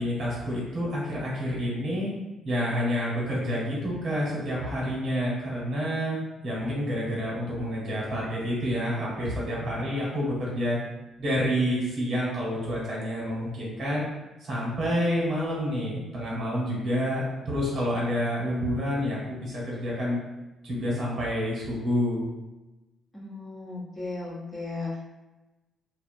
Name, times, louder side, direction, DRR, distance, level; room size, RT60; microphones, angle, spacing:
voice 1, 0.0-2.1 2.4-6.2 6.4-10.8 11.2-14.0 14.4-20.2 20.6-22.2, equal, 60° right, -6 dB, 1.0 m, -28 dB
voice 2, 23.1-25.0, left 3 dB, 20° left, -6 dB, 0.8 m, -35 dB
2.4 x 2.0 x 2.6 m, 1.1 s
cardioid pair, 90°, 0 cm